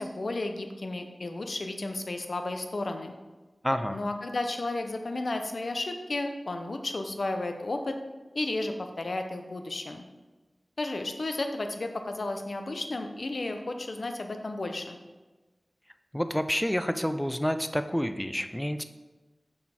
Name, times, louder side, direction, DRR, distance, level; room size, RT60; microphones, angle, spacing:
voice 1, 0.0-3.1 3.9-8.0 8.3-10.0 10.8-15.0, left 2 dB, 70° left, 5 dB, 0.6 m, -33 dB
voice 2, 3.6-4.0 16.1-18.8, equal, 10° left, 10 dB, 0.4 m, -28 dB
6.2 x 3.9 x 4.3 m, 1.2 s
wide cardioid pair, 50°, 0 cm